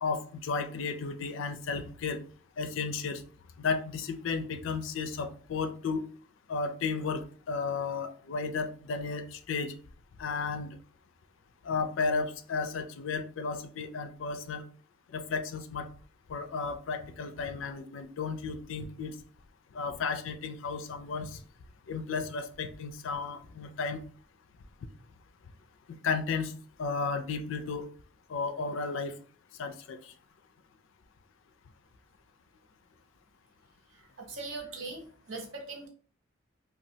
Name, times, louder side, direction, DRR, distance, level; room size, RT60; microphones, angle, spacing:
voice 1, 0.0-2.2 2.6-3.2 3.6-6.0 6.5-9.7 10.2-10.8 11.6-14.6 15.1-15.9 16.3-19.2 19.7-21.4 21.9-24.0 25.9-26.5 26.8-27.9 28.3-29.2 29.6-30.1, left 4 dB, 75° left, 8 dB, 0.4 m, -33 dB
voice 2, 33.9-35.9, right 3 dB, 75° right, 2 dB, 0.8 m, -41 dB
3.0 x 2.3 x 2.7 m, 0.43 s
head